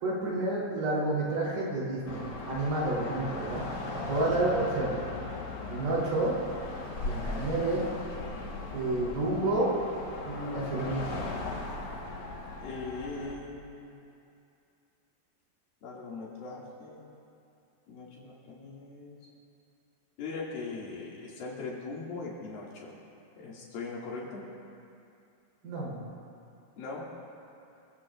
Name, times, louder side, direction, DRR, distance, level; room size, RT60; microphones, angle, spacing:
voice 1, 0.0-3.6 4.1-5.0 5.7-6.3 7.0-7.8 8.7-9.7 10.2-11.2 25.6-26.0, right 2 dB, 75° right, -6 dB, 5.3 m, -30 dB
sound 1, 2.1-13.3, left 2 dB, 50° left, 1.8 m, -38 dB
voice 2, 12.6-13.9 15.8-17.1 17.9-19.2 20.2-22.9 23.3-24.4 26.8-27.1, left 3 dB, 75° left, -4 dB, 4.2 m, -40 dB
25.5 x 16.0 x 2.5 m, 2.6 s
omnidirectional pair, 4.2 m